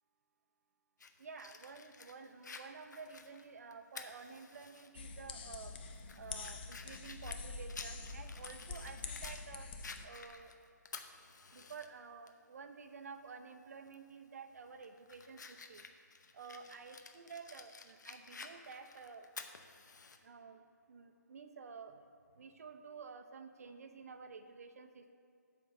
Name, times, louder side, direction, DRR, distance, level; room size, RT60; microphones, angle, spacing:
Fire, 1.0-4.9 5.3-5.4 5.9-9.4 9.8-11.9 12.3-12.4 13.9-14.1 14.6-20.2, left 4 dB, 75° left, 0.8 m, -52 dB
voice 1, 1.2-5.7 6.2-9.7 10.0-10.5 11.5-15.8 16.3-19.3 20.2-25.1, right 5 dB, 55° right, 7 dB, 0.7 m, -51 dB
sound 1, 4.9-10.1, left 4 dB, 30° left, 0.6 m, -46 dB
7.5 x 5.3 x 6.7 m, 2.5 s
hypercardioid pair, 160°, 10 cm